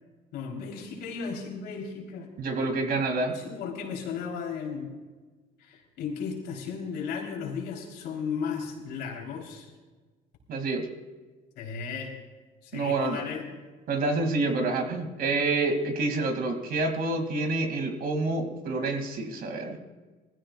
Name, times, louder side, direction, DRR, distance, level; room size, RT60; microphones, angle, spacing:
voice 1, 0.3-2.3 3.3-4.9 5.6-9.7 11.6-12.1 12.6-13.5, left 6 dB, 80° left, 0 dB, 3.7 m, -35 dB
voice 2, 2.4-3.3 10.5-10.9 12.7-13.2 13.9-19.8, right 3 dB, 60° right, 5 dB, 2.5 m, -28 dB
20.5 x 15.5 x 2.4 m, 1.3 s
cardioid pair, 110°, 17 cm